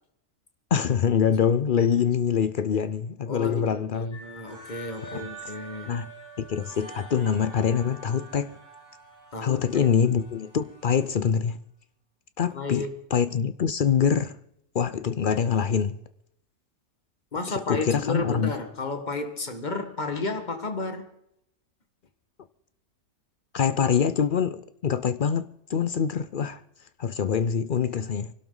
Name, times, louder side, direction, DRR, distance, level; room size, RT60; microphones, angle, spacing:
voice 1, 0.7-4.2 5.1-5.3 5.9-6.1 6.4-8.6 9.4-11.6 12.4-12.8 13.1-14.4 14.7-16.0 17.5-18.5 23.5-26.6 27.0-28.3, left 7 dB, 60° left, 0.5 m, -24 dB
voice 2, 3.3-6.0 9.3-9.9 12.5-13.0 17.3-21.1, left 3 dB, 30° left, 1.6 m, -32 dB
sound 1, 4.1-11.2, right 2 dB, 10° left, 6.9 m, -46 dB
25.0 x 12.0 x 3.9 m
omnidirectional pair, 1.6 m